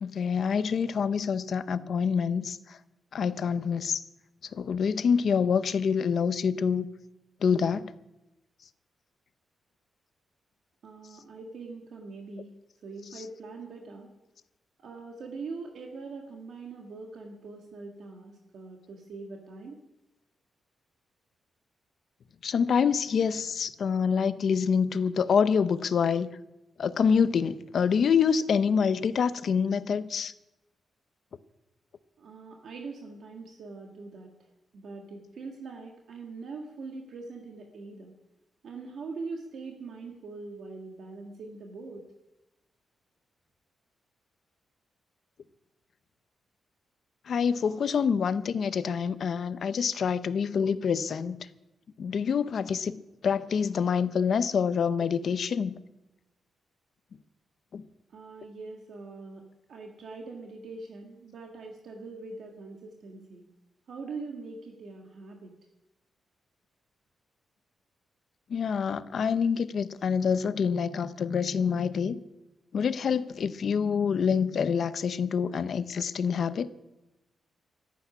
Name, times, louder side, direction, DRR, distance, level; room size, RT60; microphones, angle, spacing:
voice 1, 0.0-2.8 3.1-4.0 4.5-6.8 7.4-7.9 22.4-26.3 26.8-30.3 47.3-51.4 52.0-55.8 57.7-57.8 68.5-72.2 72.7-76.7, left 6 dB, 50° left, 0.7 m, -26 dB
voice 2, 10.8-12.5 12.8-14.1 14.8-19.8 32.2-34.5 34.7-38.1 38.6-42.0 58.1-59.4 59.7-63.5 63.9-65.5, right 3 dB, 60° right, 1.6 m, -42 dB
14.5 x 8.4 x 9.8 m
wide cardioid pair, 170°, 0 cm